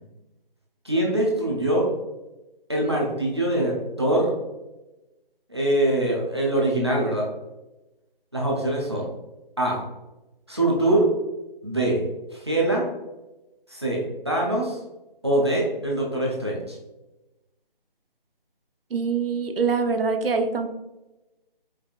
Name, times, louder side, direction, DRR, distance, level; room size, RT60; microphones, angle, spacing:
voice 1, 0.8-1.9 2.7-4.3 5.5-7.3 8.3-9.0 9.6-9.8 10.5-11.0 11.6-12.0 12.3-12.8 13.7-14.8 15.2-16.8, right 1 dB, 30° right, -3 dB, 0.6 m, -23 dB
voice 2, 18.9-20.7, right 5 dB, 75° right, 7 dB, 0.6 m, -24 dB
4.7 x 2.5 x 2.4 m, 1.0 s
figure-of-eight pair, 175°, 29 cm